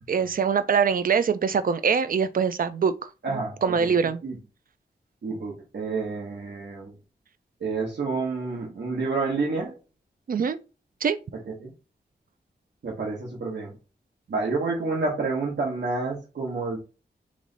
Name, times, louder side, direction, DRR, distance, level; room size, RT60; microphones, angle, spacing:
voice 1, 0.1-4.2 10.3-10.6 11.0-11.2, right 6 dB, 55° right, 0.4 m, -24 dB
voice 2, 3.2-4.0 4.2-4.4 5.2-7.0 7.6-9.8 11.5-11.7 12.8-13.8 14.3-16.8, right 3 dB, 80° right, 1.1 m, -29 dB
3.1 x 3.1 x 3.9 m
wide cardioid pair, 105°, 18 cm